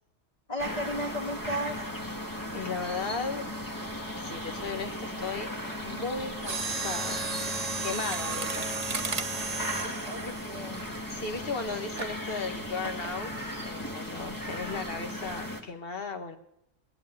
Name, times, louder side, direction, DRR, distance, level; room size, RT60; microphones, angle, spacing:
voice 1, 0.5-1.8 10.0-10.8, equal, 30° left, 0 dB, 2.5 m, -34 dB
sound 1, 0.6-15.6, equal, 15° left, 1.2 m, -37 dB
voice 2, 2.5-3.5 4.2-5.5 5.8-7.3 7.8-8.8 9.8-9.9 10.2-10.3 11.1-16.4, left 4 dB, 50° left, 5 dB, 1.4 m, -36 dB
Mechanisms, 6.4-11.4 12.0-12.2 12.8-13.2 13.5-13.6, right 4 dB, 35° right, 0.9 m, -34 dB
19.0 x 8.3 x 8.7 m, 0.76 s
omnidirectional pair, 1.3 m